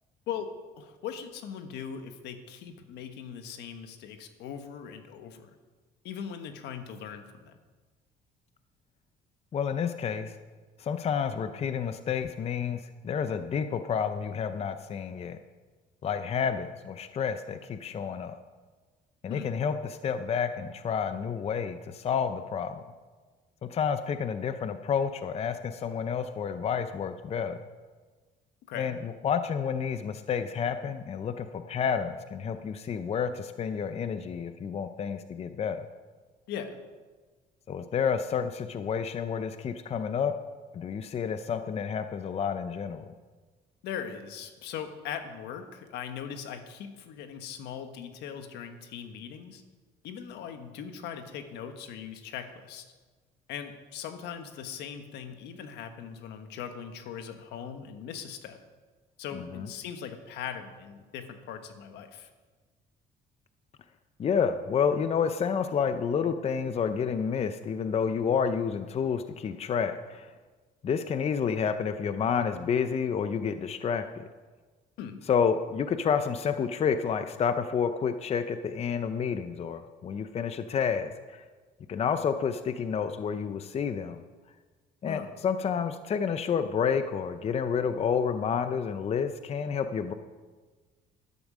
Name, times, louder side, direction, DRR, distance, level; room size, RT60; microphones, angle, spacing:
voice 1, 0.3-5.5 6.0-7.5 19.3-19.5 28.7-29.0 36.5-36.8 43.8-49.6 50.0-52.9 53.5-58.6 59.2-62.3 75.0-75.2 85.1-85.3, left 8 dB, 80° left, 7 dB, 1.3 m, -40 dB
voice 2, 9.5-10.3 10.8-15.4 16.0-18.4 19.2-22.8 23.6-27.6 28.8-35.8 37.7-40.3 40.7-43.1 59.3-59.7 64.2-70.3 70.8-74.3 75.3-81.4 81.9-84.2 85.0-90.1, left 7 dB, 40° left, 9 dB, 0.6 m, -30 dB
12.5 x 11.0 x 5.0 m, 1.4 s
cardioid pair, 110°, 17 cm